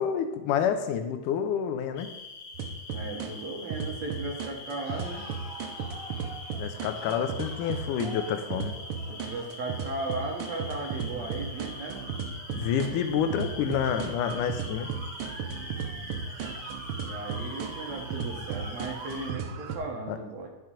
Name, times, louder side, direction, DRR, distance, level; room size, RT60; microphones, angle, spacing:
voice 1, 0.0-2.1 6.6-8.8 12.5-14.9 20.1-20.2, left 8 dB, 90° left, 7 dB, 2.3 m, -28 dB
sound 1, 1.9-19.3, left 3 dB, 55° left, 1.9 m, -44 dB
sound 2, 2.5-3.3 3.7-8.1 8.5-19.8, right 6 dB, 85° right, 1.2 m, -35 dB
voice 2, 2.9-5.3 9.1-12.0 17.0-20.5, right 2 dB, 65° right, 1 dB, 2.4 m, -36 dB
sound 3, 4.8-12.6, right 1 dB, 25° right, 3.2 m, -48 dB
11.0 x 4.6 x 4.9 m, 0.97 s
omnidirectional pair, 3.6 m